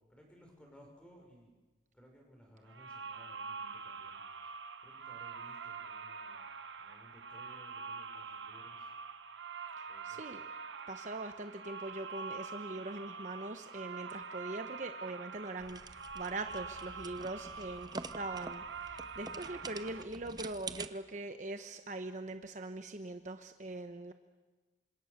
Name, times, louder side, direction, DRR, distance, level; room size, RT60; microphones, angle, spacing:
voice 1, 0.1-1.5 1.9-4.2 4.8-6.4 6.8-8.8 9.9-10.2, equal, 5° left, 1 dB, 5.8 m, -59 dB
sound 1, 2.7-20.0, right 5 dB, 75° right, 1.3 m, -45 dB
voice 2, 10.0-10.4 10.9-24.1, right 2 dB, 40° right, 7 dB, 1.0 m, -42 dB
sound 2, 15.6-20.9, right 3 dB, 20° right, 0.8 m, -47 dB
29.0 x 26.0 x 6.7 m, 1.3 s
head